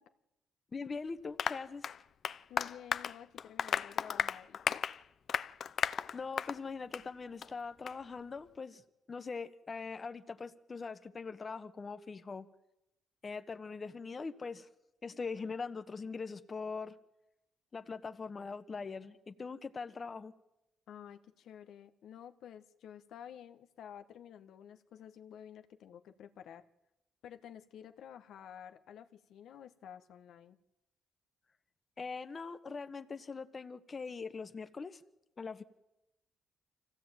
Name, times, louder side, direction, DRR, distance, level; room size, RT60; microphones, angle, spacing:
voice 1, 0.7-1.9 6.1-8.8 9.1-12.5 13.2-14.7 15.0-17.0 17.7-20.3 32.0-35.0 35.4-35.6, left 4 dB, 35° left, 10 dB, 1.4 m, -42 dB
Applause, 1.4-6.6 6.9-7.1 7.4-7.5 7.9-8.0, left 8 dB, 55° left, 0.8 m, -35 dB
voice 2, 2.5-4.8 20.9-26.6 27.2-30.6, left 9 dB, 75° left, 9 dB, 1.3 m, -51 dB
25.0 x 16.5 x 9.1 m, 0.93 s
cardioid pair, 90°, 0 cm